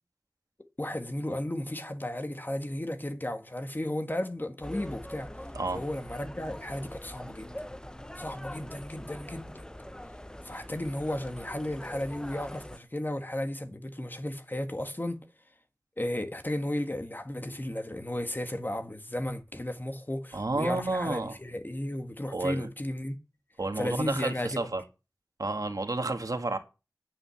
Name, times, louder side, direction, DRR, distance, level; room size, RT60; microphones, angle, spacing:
voice 1, 0.8-5.3 5.7-7.5 8.2-9.6 10.4-15.2 16.0-23.1 23.8-24.7, left 1 dB, 30° left, 1.7 m, -34 dB
sound 1, 4.6-12.8, left 1 dB, 10° left, 0.6 m, -43 dB
voice 2, 20.3-21.4 22.3-22.7 23.6-24.8 25.4-26.6, right 2 dB, 75° right, 1.8 m, -31 dB
9.8 x 8.5 x 7.2 m
wide cardioid pair, 55°, 6 cm